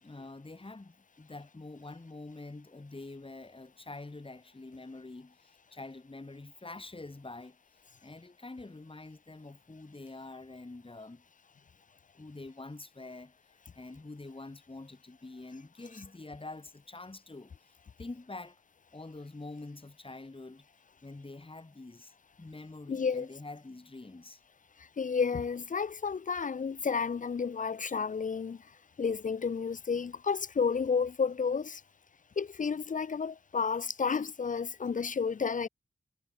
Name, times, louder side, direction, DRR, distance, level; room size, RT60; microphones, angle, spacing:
voice 1, 0.0-7.6 8.0-11.2 12.2-13.4 13.7-17.5 18.0-18.6 18.9-20.7 21.0-24.4, left 2 dB, 30° left, 3.6 m, -46 dB
voice 2, 22.9-23.3 24.8-28.6 29.0-31.8 32.4-35.7, left 5 dB, 45° left, 0.5 m, -31 dB
wide cardioid pair, 70°, 19 cm